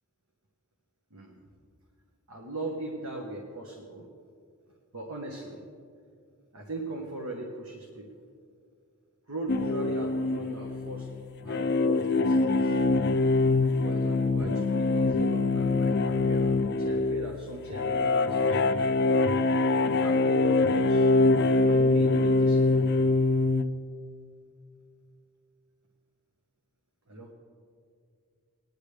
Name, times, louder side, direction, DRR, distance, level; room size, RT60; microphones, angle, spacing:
voice 1, 2.3-4.0 4.9-5.6 6.5-8.1 9.3-11.1 11.4-12.9 13.8-18.9 20.0-21.1 21.7-22.9 27.1-27.3, right 1 dB, 80° right, 1 dB, 1.2 m, -39 dB
sound 1, 9.5-23.6, left 3 dB, 50° left, 0.4 m, -24 dB
20.0 x 10.0 x 3.4 m, 2.3 s
head